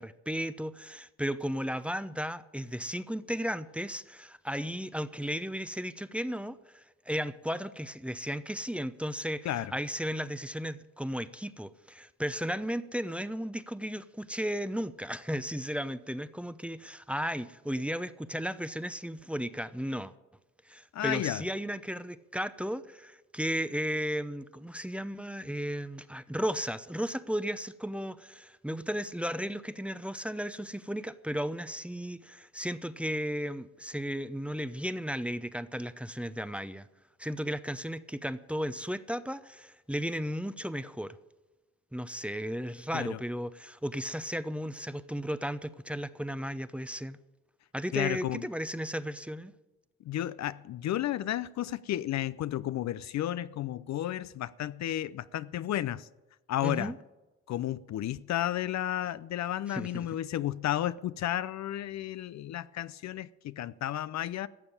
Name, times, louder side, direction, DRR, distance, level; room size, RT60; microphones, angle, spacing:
voice 1, 0.0-20.1 20.7-36.9 37.2-41.2 41.9-47.2 47.7-49.5 56.6-57.0 59.7-60.1, equal, 5° right, 0.7 m, -35 dB
voice 2, 20.9-21.4 42.9-43.2 47.9-48.5 50.0-56.1 56.5-56.9 57.5-64.5, left 12 dB, 55° left, 0.5 m, -32 dB
14.5 x 7.0 x 9.7 m
supercardioid pair, 60°, 33 cm